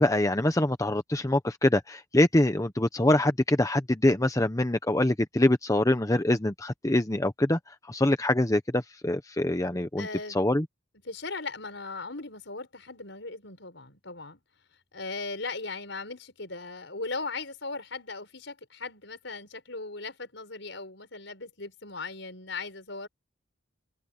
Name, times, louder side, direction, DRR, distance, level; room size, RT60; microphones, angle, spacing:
voice 1, 0.0-7.6 7.9-10.6, left 1 dB, 15° left, 0.9 m, -24 dB
voice 2, 10.0-10.4 11.0-14.4 14.9-23.1, left 3 dB, 65° left, 6.1 m, -38 dB
head